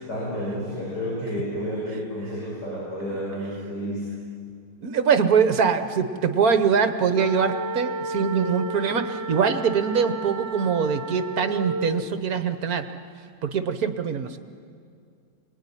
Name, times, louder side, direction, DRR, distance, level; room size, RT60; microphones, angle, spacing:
voice 1, 0.1-4.1, equal, 60° left, -8 dB, 8.4 m, -30 dB
voice 2, 4.8-12.9 13.4-14.4, right 6 dB, 55° right, 9 dB, 1.5 m, -23 dB
sound 1, 7.1-12.1, right 2 dB, 80° right, 1.5 m, -32 dB
26.5 x 20.0 x 10.0 m, 2.3 s
omnidirectional pair, 2.0 m